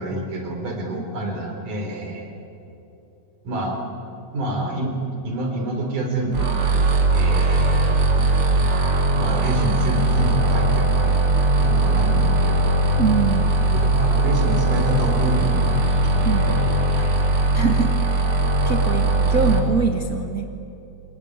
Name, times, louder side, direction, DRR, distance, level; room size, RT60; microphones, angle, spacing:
voice 1, 0.0-2.3 3.4-3.8 4.3-5.0 5.2-6.5 7.1-7.9 9.1-11.2 11.6-12.7 13.7-15.7 16.1-17.0, right 1 dB, 90° right, 3 dB, 5.4 m, -27 dB
voice 2, 0.9-1.3 13.0-13.5 16.2-16.4 17.5-18.3 18.6-20.5, right 6 dB, 65° right, 4 dB, 0.9 m, -24 dB
sound 1, 6.3-19.6, right 2 dB, 45° right, 3.2 m, -19 dB
26.5 x 23.0 x 9.5 m, 2.9 s
omnidirectional pair, 3.6 m